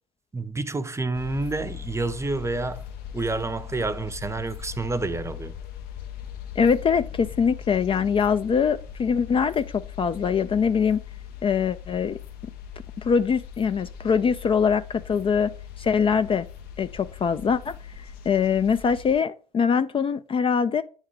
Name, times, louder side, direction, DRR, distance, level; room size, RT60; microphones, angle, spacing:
voice 1, 0.3-2.9 3.1-5.6, right 3 dB, 15° right, 0.6 m, -29 dB
sound 1, 1.1-19.2, left 9 dB, 65° left, 0.8 m, -40 dB
voice 2, 6.6-11.0 11.4-12.2 13.0-16.5 16.8-20.8, left 6 dB, 30° left, 0.4 m, -23 dB
9.1 x 3.6 x 3.2 m
hypercardioid pair, 60°, 18 cm